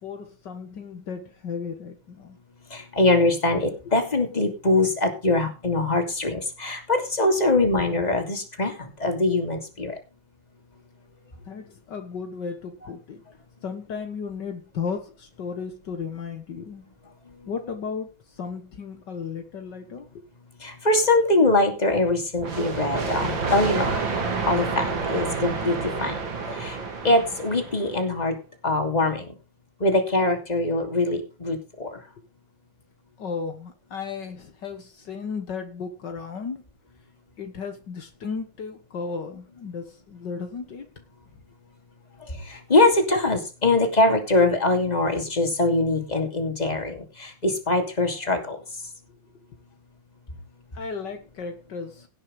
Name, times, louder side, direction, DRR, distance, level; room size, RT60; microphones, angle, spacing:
voice 1, 0.0-2.4 11.4-13.2 13.6-16.8 17.5-20.3 33.2-36.7 37.4-40.9 49.3-49.4 50.7-52.1, left 5 dB, 65° left, 2.0 m, -35 dB
voice 2, 2.7-10.0 17.4-17.5 20.6-24.0 24.5-26.2 26.5-26.8 27.0-28.4 28.6-29.3 29.8-32.0 42.2-48.6, left 2 dB, 20° left, 2.8 m, -23 dB
sound 1, 22.4-28.0, right 4 dB, 80° right, 3.1 m, -29 dB
17.5 x 6.4 x 5.3 m
omnidirectional pair, 2.0 m